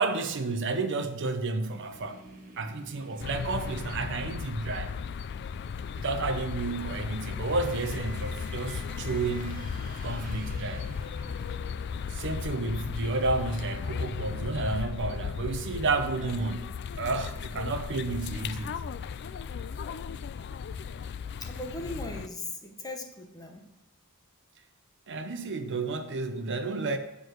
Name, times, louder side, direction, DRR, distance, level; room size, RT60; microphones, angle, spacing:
voice 1, 0.0-2.2 2.6-4.9 6.0-10.8 12.1-16.7 17.0-18.8 25.1-27.0, right 3 dB, 60° right, 0.7 m, -31 dB
sound 1, 1.9-5.2 7.2-14.5, right 3 dB, 40° right, 1.2 m, -51 dB
sound 2, 3.2-22.3, left 6 dB, 55° left, 0.3 m, -36 dB
voice 2, 21.4-23.6, left 2 dB, 20° left, 1.1 m, -39 dB
8.7 x 4.8 x 6.3 m
head